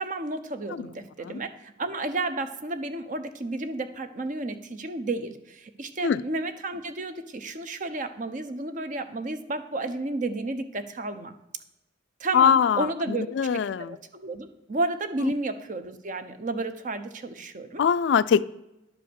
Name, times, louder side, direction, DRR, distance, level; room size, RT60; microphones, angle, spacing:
voice 1, 0.0-11.3 12.2-17.8, right 2 dB, 45° right, 10 dB, 0.7 m, -32 dB
voice 2, 12.3-14.0 17.8-18.5, left 7 dB, 65° left, 17 dB, 0.3 m, -22 dB
11.0 x 4.8 x 6.9 m, 0.91 s
head